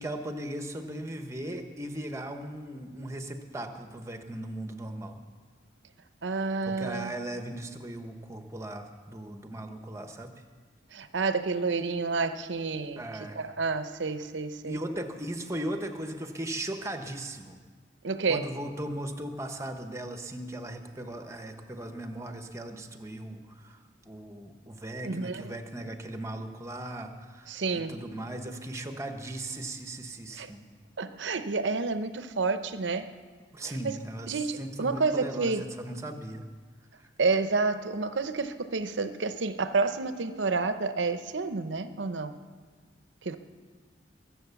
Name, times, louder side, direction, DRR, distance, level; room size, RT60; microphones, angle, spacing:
voice 1, 0.0-5.2 6.6-10.3 13.0-13.4 14.6-17.6 18.3-30.6 33.5-36.4 37.0-37.1, right 1 dB, 15° right, 6 dB, 1.0 m, -38 dB
voice 2, 6.2-7.1 10.9-13.0 13.4-14.8 18.0-18.4 25.0-25.5 27.5-28.0 30.3-30.5 31.0-33.1 33.8-34.0 34.3-35.7 37.2-42.4 43.2-43.4, right 4 dB, 80° right, 10 dB, 0.8 m, -29 dB
22.0 x 7.7 x 7.0 m, 1.5 s
head